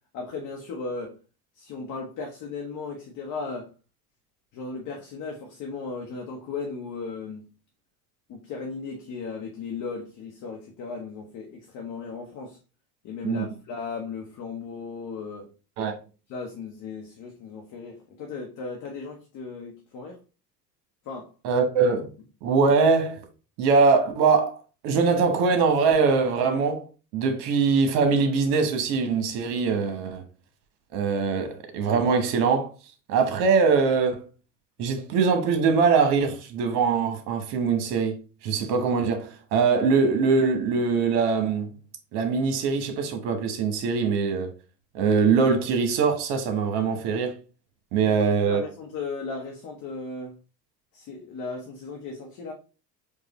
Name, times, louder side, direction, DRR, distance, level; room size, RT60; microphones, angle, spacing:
voice 1, 0.1-1.2 1.5-3.7 4.5-7.5 8.3-12.6 13.0-15.5 16.3-20.2 21.0-21.3 30.0-30.2 48.0-50.4 50.9-52.5, left 4 dB, 40° left, 0.8 m, -36 dB
voice 2, 21.4-22.1 22.4-23.2 23.6-24.6 24.8-26.9 27.1-30.2 30.9-32.7 33.1-34.2 34.8-38.2 38.4-41.7 42.1-44.5 44.9-47.4 47.9-48.6, right 5 dB, 55° right, 1.1 m, -22 dB
4.7 x 2.3 x 3.0 m
figure-of-eight pair, 70°, 49 cm